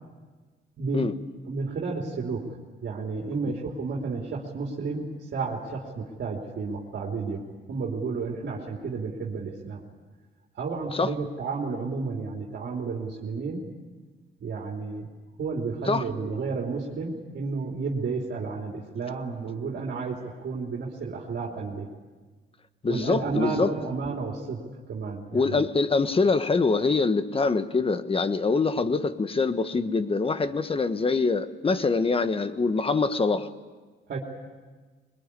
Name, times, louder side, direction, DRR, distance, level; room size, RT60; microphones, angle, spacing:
voice 1, 0.8-1.1 1.5-7.4 7.7-9.8 10.5-13.6 14.4-15.1 15.4-21.9 22.8-24.6 24.9-25.7 34.1-34.2, right 4 dB, 60° right, -2 dB, 3.2 m, -32 dB
voice 2, 22.8-23.7 25.3-33.5, left 4 dB, 30° left, 11 dB, 1.4 m, -24 dB
22.5 x 21.0 x 9.9 m, 1.4 s
cardioid pair, 90°, 20 cm